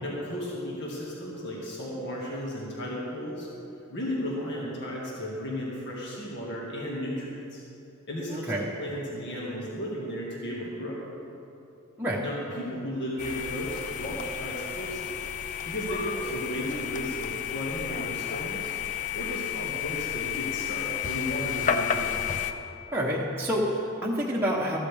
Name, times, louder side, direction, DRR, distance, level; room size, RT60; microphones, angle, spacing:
voice 1, 0.0-3.5 3.9-7.6 8.1-8.5 8.8-11.0 12.2-15.1 15.6-18.7 19.1-22.2, equal, 55° left, -4 dB, 1.9 m, -34 dB
voice 2, 8.3-8.7 12.0-12.2 22.9-24.8, equal, 10° right, -6 dB, 1.0 m, -28 dB
sound 1, 13.2-22.5, left 9 dB, 35° left, 0.5 m, -32 dB
14.0 x 13.0 x 3.5 m, 2.8 s
head